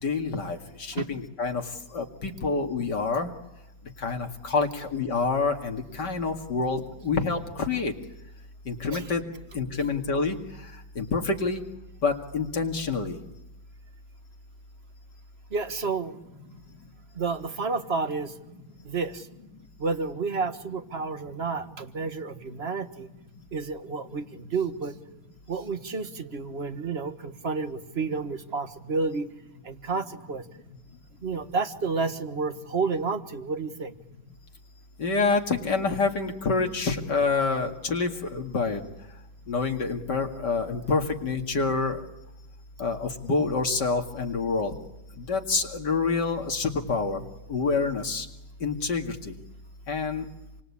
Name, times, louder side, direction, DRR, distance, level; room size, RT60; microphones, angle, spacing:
voice 1, 0.0-1.6 1.9-3.3 4.0-7.9 8.7-9.2 9.5-10.4 11.0-11.6 12.0-13.2 35.0-38.8 39.5-42.0 42.8-44.7 45.3-47.2 47.5-48.3 48.6-49.3 49.9-50.2, left 4 dB, 65° left, 4 dB, 2.8 m, -27 dB
voice 2, 15.5-16.2 17.1-18.3 18.8-19.3 19.8-23.1 23.5-25.0 25.5-29.3 29.6-30.4 31.2-33.9, right 4 dB, 35° right, 10 dB, 1.6 m, -30 dB
28.0 x 25.0 x 8.6 m, 0.91 s
omnidirectional pair, 2.1 m